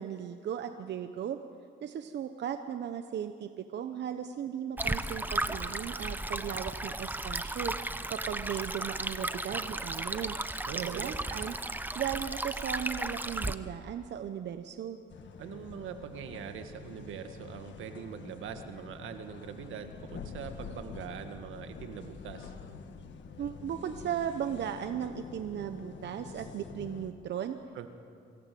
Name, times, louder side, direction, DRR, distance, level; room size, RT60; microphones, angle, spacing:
voice 1, 0.0-1.4 1.8-7.7 8.1-10.4 10.7-11.5 11.9-15.0 23.4-27.6, right 9 dB, 60° right, 8 dB, 0.9 m, -36 dB
Stream, 4.8-13.5, right 2 dB, 10° right, 0.9 m, -35 dB
voice 2, 10.7-11.1 15.4-22.5 27.8-27.9, right 8 dB, 85° right, 7 dB, 1.7 m, -42 dB
sound 1, 15.1-27.1, left 5 dB, 65° left, 1.6 m, -46 dB
24.5 x 16.5 x 7.7 m, 2.4 s
cardioid pair, 90°, 20 cm